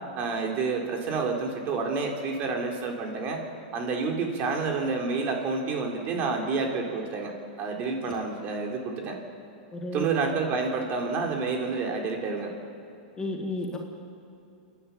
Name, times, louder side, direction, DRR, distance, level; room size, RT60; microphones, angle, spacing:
voice 1, 0.2-3.4 3.7-7.3 7.6-9.2 9.9-12.5, right 4 dB, 35° right, 1 dB, 3.9 m, -29 dB
voice 2, 9.7-10.1 13.2-13.8, left 2 dB, 15° left, 2 dB, 2.1 m, -32 dB
27.5 x 10.5 x 8.9 m, 2.7 s
hypercardioid pair, 125°, 5 cm